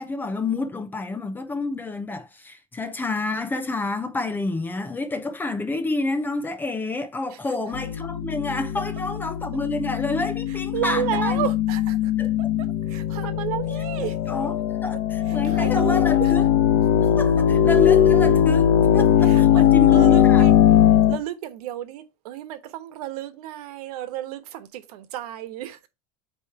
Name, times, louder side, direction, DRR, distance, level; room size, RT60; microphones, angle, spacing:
voice 1, 0.0-11.4 12.2-12.3 14.0-14.6 14.8-16.5 17.0-20.5, left 2 dB, 10° left, 0.7 m, -29 dB
sound 1, 7.7-21.2, left 10 dB, 50° left, 0.9 m, -19 dB
voice 2, 10.5-12.1 12.9-14.2 14.9-16.3 19.2-20.5 21.1-25.9, right 12 dB, 85° right, 1.1 m, -32 dB
8.3 x 3.1 x 4.5 m
cardioid pair, 170°, 19 cm